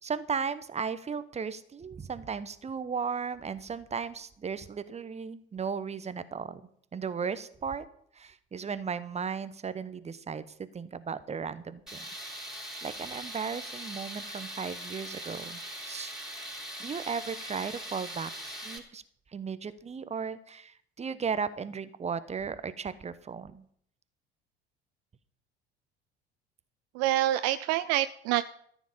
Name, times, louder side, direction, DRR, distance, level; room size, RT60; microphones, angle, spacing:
voice 1, 0.0-6.6 6.9-7.9 8.1-12.0 12.8-19.0 19.3-23.6, right 6 dB, 20° right, 14 dB, 0.9 m, -36 dB
Tools, 11.9-18.8, equal, ahead, 3.6 m, -41 dB
voice 2, 27.0-28.4, right 14 dB, 50° right, 14 dB, 0.5 m, -26 dB
14.0 x 9.4 x 5.1 m, 0.65 s
figure-of-eight pair, 60°, 32 cm